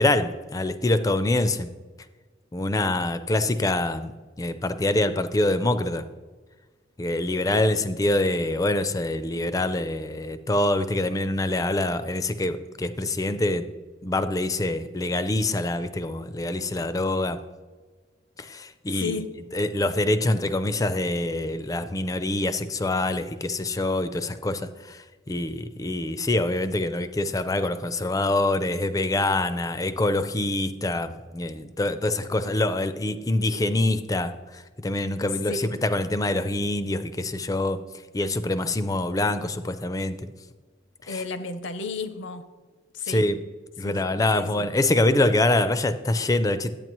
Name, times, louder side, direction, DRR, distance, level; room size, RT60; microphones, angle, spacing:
voice 1, 0.0-1.7 2.5-4.1 4.4-6.0 7.0-13.6 14.0-17.4 18.4-19.2 19.5-25.0 25.3-34.3 34.8-37.8 38.1-40.2 41.1-41.2 43.1-43.4 43.8-46.7, left 2 dB, 20° left, 11 dB, 0.4 m, -25 dB
voice 2, 18.9-19.3 35.5-35.8 41.1-42.4 42.9-43.3 43.8-43.9 44.3-44.7, left 4 dB, 75° left, 10 dB, 0.6 m, -33 dB
10.5 x 8.7 x 3.0 m, 1.4 s
head